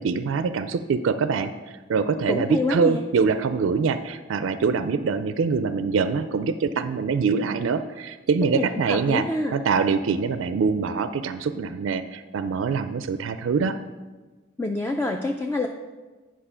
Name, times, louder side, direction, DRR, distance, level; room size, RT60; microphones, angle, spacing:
voice 1, 0.0-1.5 1.9-9.3 9.5-13.8, right 5 dB, 75° right, 11 dB, 0.4 m, -24 dB
voice 2, 2.3-3.0 8.5-9.6 14.6-15.7, left 2 dB, 10° left, 3 dB, 0.3 m, -26 dB
8.8 x 5.1 x 5.5 m, 1.3 s
head